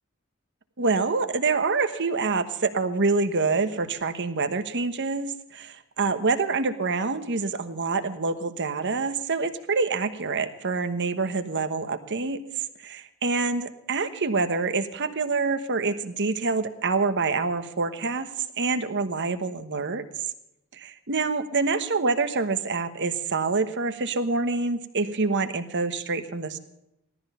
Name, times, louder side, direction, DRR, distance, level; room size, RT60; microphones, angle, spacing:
voice 1, 0.8-12.4 12.8-18.3 18.6-20.1 20.7-26.6, right 4 dB, 55° right, 9 dB, 1.2 m, -26 dB
17.0 x 13.0 x 5.6 m, 0.85 s
head